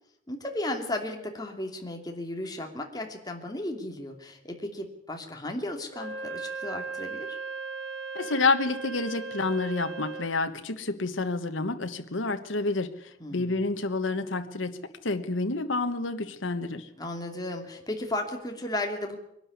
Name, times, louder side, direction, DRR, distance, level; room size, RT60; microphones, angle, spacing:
voice 1, 0.3-7.4 13.2-13.6 17.0-19.2, left 1 dB, 20° left, 3 dB, 2.7 m, -35 dB
Wind instrument woodwind instrument, 5.9-10.4, right 4 dB, 70° right, 1.5 m, -37 dB
voice 2, 8.1-16.9, left 3 dB, 90° left, 8 dB, 1.3 m, -29 dB
23.0 x 12.0 x 9.7 m, 0.79 s
head